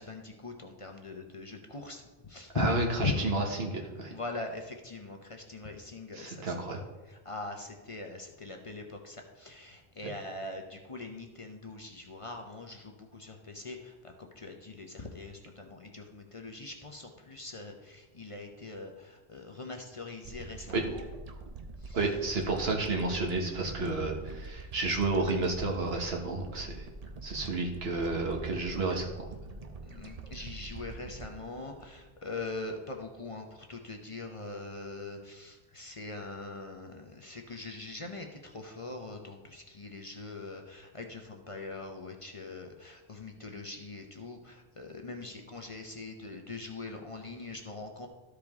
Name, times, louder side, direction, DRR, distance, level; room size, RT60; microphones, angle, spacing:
voice 1, 0.0-3.2 4.1-6.5 7.0-21.0 21.8-22.1 29.8-48.1, left 3 dB, 35° left, 3 dB, 0.7 m, -41 dB
voice 2, 2.6-4.1 6.1-6.8 20.7-20.8 21.9-26.9 27.2-29.1, right 3 dB, 75° right, 1 dB, 1.5 m, -31 dB
sound 1, 20.2-32.7, right 3 dB, 40° right, 0.7 m, -45 dB
13.0 x 5.0 x 3.6 m, 1.2 s
omnidirectional pair, 1.1 m